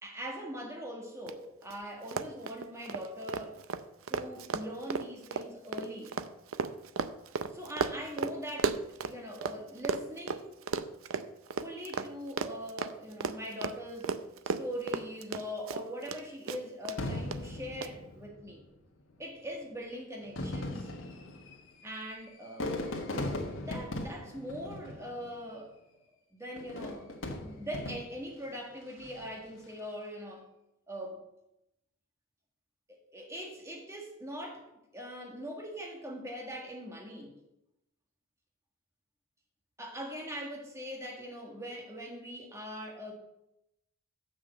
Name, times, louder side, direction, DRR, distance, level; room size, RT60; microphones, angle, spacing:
voice 1, 0.0-3.6 4.1-6.1 7.5-10.6 11.6-14.2 14.4-18.6 19.2-20.9 21.8-22.7 23.2-25.7 26.3-27.1 27.4-30.5 30.9-31.2 32.9-37.4 39.8-43.1, equal, 15° right, 1.7 m, -41 dB
Run, 1.3-1.4 1.6-1.8 2.0-9.6 9.8-16.2 16.5-17.0 17.3-17.4 17.8-17.9, right 5 dB, 75° right, 0.5 m, -34 dB
Fireworks, 17.0-18.6 19.4-19.5 20.2-25.5 26.6-28.3 28.9-29.4, left 1 dB, 70° left, 1.5 m, -38 dB
7.5 x 6.1 x 7.7 m
head